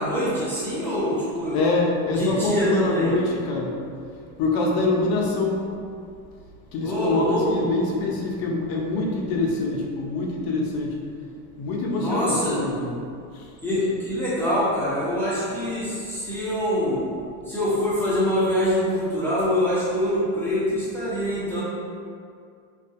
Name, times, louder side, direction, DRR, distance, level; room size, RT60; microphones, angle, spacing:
voice 1, 0.0-1.6 2.1-3.1 6.8-7.6 11.9-12.6 13.6-17.0 17.5-21.6, equal, 5° left, -11 dB, 0.6 m, -24 dB
voice 2, 1.5-3.7 4.4-5.6 6.7-11.3 11.6-13.0 13.3-13.5, left 2 dB, 50° left, -1 dB, 0.6 m, -25 dB
2.5 x 2.4 x 2.4 m, 2.3 s
supercardioid pair, 110°, 49 cm